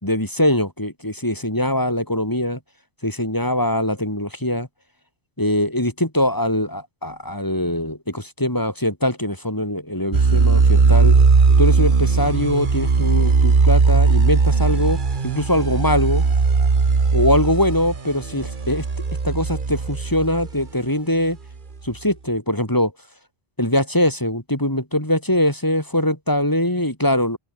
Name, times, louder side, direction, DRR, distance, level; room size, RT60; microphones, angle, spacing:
voice 1, 0.0-2.6 3.0-4.7 5.4-11.2 11.6-16.2 17.1-18.8 19.2-21.4 21.8-22.9 23.6-27.4, left 1 dB, 20° left, 5.1 m, -22 dB
sound 1, 10.1-20.6, right 4 dB, 50° right, 1.6 m, -18 dB
open air
omnidirectional pair, 1.0 m